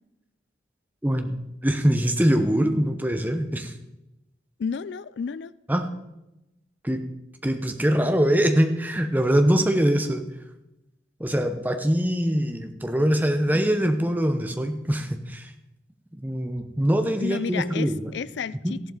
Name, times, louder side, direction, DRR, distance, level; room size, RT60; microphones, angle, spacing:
voice 1, 1.0-1.4 1.6-3.7 5.7-5.9 6.8-7.0 7.4-10.2 11.2-15.5 16.1-18.1 18.6-18.7, equal, 10° right, 6 dB, 0.9 m, -23 dB
voice 2, 4.6-5.5 17.2-18.8, left 6 dB, 75° left, 18 dB, 0.4 m, -31 dB
14.0 x 11.5 x 3.9 m, 0.93 s
head